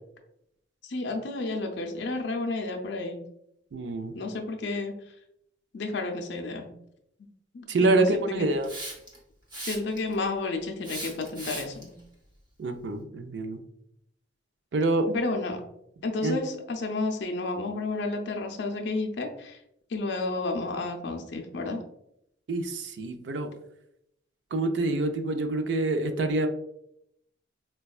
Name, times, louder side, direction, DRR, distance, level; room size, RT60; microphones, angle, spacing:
voice 1, 0.8-3.2 4.1-4.9 5.7-6.7 7.5-8.5 9.7-12.0 15.1-15.6 16.0-19.6 19.9-21.8, left 3 dB, 60° left, 4 dB, 0.5 m, -31 dB
voice 2, 3.7-4.1 7.7-8.7 12.6-13.6 14.7-15.1 16.2-16.4 22.5-23.5 24.5-26.5, right 2 dB, 60° right, 6 dB, 0.4 m, -26 dB
Hiss, 8.6-9.2 9.5-10.1 10.8-11.8, right 1 dB, 20° right, 0.7 m, -37 dB
4.3 x 2.2 x 2.3 m, 0.77 s
head